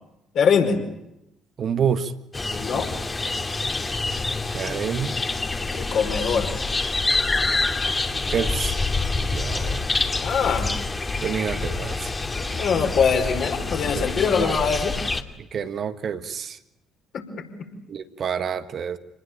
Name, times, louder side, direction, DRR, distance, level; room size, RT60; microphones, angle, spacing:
voice 1, 0.3-0.8 2.6-2.9 5.7-6.5 10.2-10.7 12.4-15.0 17.1-17.7, left 6 dB, 55° left, 4 dB, 5.2 m, -23 dB
voice 2, 1.6-2.1 4.5-5.3 8.1-8.8 9.3-9.9 11.2-12.1 13.9-14.1 14.4-14.5 15.5-16.6 17.9-19.0, right 7 dB, 50° right, 10 dB, 1.6 m, -28 dB
sound 1, 2.3-15.2, left 3 dB, 25° left, 2.4 m, -26 dB
28.0 x 20.5 x 9.0 m, 0.87 s
figure-of-eight pair, 50°, 0 cm